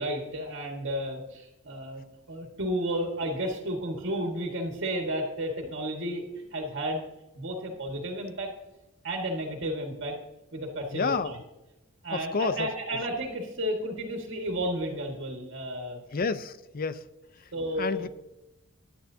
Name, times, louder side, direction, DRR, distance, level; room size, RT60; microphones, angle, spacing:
voice 1, 0.0-2.0 2.3-7.1 7.4-8.5 9.0-10.2 10.5-11.3 12.0-16.0 17.5-18.0, equal, 60° right, 1 dB, 1.8 m, -32 dB
voice 2, 10.9-11.3 12.1-13.0 16.1-17.1 17.3-17.5 17.8-18.1, left 4 dB, 45° left, 14 dB, 0.6 m, -30 dB
16.0 x 10.0 x 2.8 m, 0.98 s
head